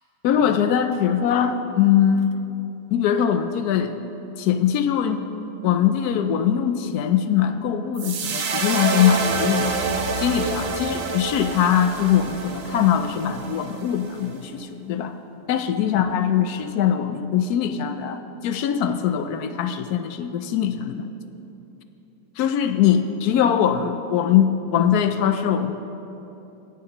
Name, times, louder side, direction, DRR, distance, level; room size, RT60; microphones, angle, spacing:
voice 1, 0.2-2.3 2.9-3.9 4.4-5.2 5.6-9.8 10.2-15.2 15.5-21.1 22.4-25.7, left 9 dB, 70° left, 9 dB, 1.0 m, -22 dB
sound 1, 8.0-14.3, right 4 dB, 55° right, 0.6 m, -27 dB
16.5 x 10.5 x 3.0 m, 2.9 s
omnidirectional pair, 1.9 m